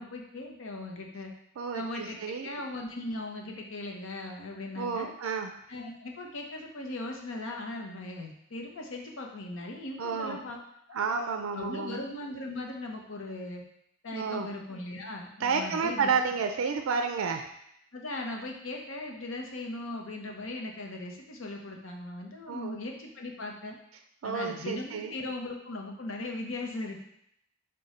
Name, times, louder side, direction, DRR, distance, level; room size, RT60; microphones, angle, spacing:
voice 1, 0.0-1.3 1.7-5.1 5.7-10.6 10.9-11.0 11.5-13.6 14.0-16.1 17.9-23.8 24.2-27.0, left 2 dB, 70° left, 1 dB, 0.7 m, -38 dB
voice 2, 1.6-2.5 4.8-5.5 10.0-10.4 10.9-12.0 14.1-14.5 15.4-17.5 22.5-22.8 24.2-25.1, right 5 dB, 80° right, 6 dB, 0.4 m, -31 dB
5.0 x 2.2 x 4.1 m, 0.76 s
head